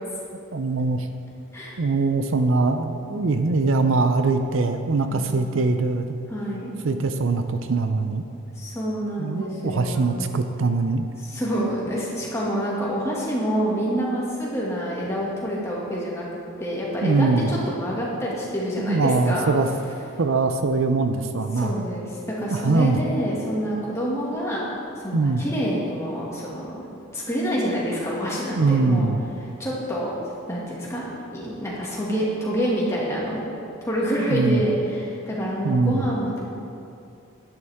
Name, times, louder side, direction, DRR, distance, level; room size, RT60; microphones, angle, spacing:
voice 1, 0.5-1.1 1.8-6.1 6.8-8.2 9.2-11.1 17.0-17.5 18.8-19.7 20.2-21.8 22.5-23.0 25.1-25.4 28.6-29.2 34.3-34.6 35.6-36.0, right 3 dB, 65° right, 8 dB, 0.5 m, -22 dB
voice 2, 6.3-6.7 8.6-10.3 11.2-16.3 16.6-19.5 21.5-24.7 25.0-26.9 27.1-29.1 29.6-30.1 30.5-33.5 33.9-36.4, equal, 15° left, -6 dB, 2.0 m, -27 dB
11.5 x 11.0 x 3.6 m, 2.6 s
head